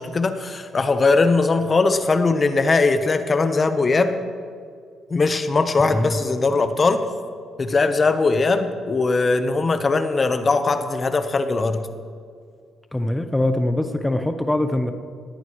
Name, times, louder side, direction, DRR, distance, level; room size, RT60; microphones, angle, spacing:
voice 1, 0.0-4.2 5.1-7.0 7.6-11.8, left 3 dB, 35° left, 9 dB, 1.1 m, -20 dB
voice 2, 5.8-6.2 12.9-14.9, left 1 dB, 10° left, 7 dB, 0.9 m, -23 dB
18.0 x 18.0 x 3.2 m, 2.1 s
cardioid pair, 90°, 0 cm